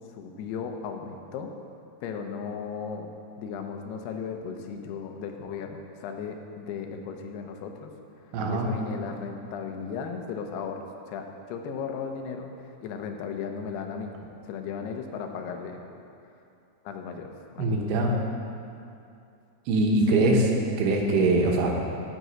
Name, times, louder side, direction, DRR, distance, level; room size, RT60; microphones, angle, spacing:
voice 1, 0.1-1.5 2.0-3.1 3.4-7.9 8.3-10.8 11.1-14.1 14.4-15.8 16.8-17.8 20.1-20.6, left 6 dB, 85° left, 4 dB, 2.8 m, -36 dB
voice 2, 8.3-8.7 17.6-18.1 19.7-20.5 20.8-21.8, right 2 dB, 90° right, 1 dB, 3.1 m, -22 dB
9.2 x 6.1 x 8.0 m, 2.5 s
omnidirectional pair, 4.6 m